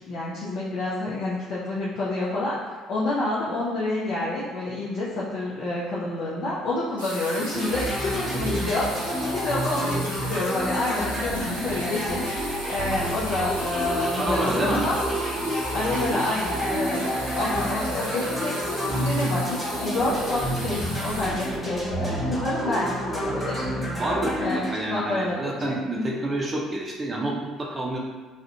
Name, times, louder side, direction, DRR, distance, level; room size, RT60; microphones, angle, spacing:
voice 1, 0.1-2.6 2.9-15.1 15.7-23.8 24.4-26.2, left 2 dB, 55° left, -7 dB, 0.5 m, -28 dB
sound 1, 7.0-22.3 23.3-23.4, right 1 dB, 90° right, 0.5 m, -37 dB
sound 2, 7.5-24.7, equal, ahead, 0.9 m, -29 dB
voice 2, 14.2-14.8 24.0-28.0, right 1 dB, 25° right, -2 dB, 0.4 m, -28 dB
2.4 x 2.1 x 2.6 m, 1.4 s
figure-of-eight pair, 55°, 0 cm